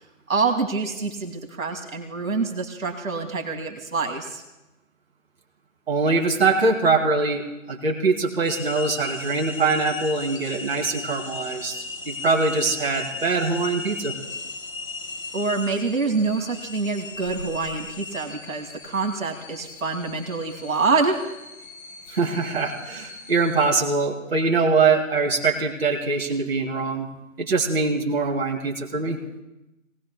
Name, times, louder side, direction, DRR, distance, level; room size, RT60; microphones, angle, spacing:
voice 1, 0.3-4.4 15.3-21.2, right 4 dB, 80° right, 4 dB, 2.1 m, -26 dB
voice 2, 5.9-11.8 12.1-14.1 22.1-27.1 27.4-29.2, right 4 dB, 50° right, -1 dB, 2.5 m, -23 dB
sound 1, 8.4-23.8, left 3 dB, 85° left, 1.9 m, -37 dB
27.0 x 18.5 x 2.2 m, 0.95 s
hypercardioid pair, 175°, 40 cm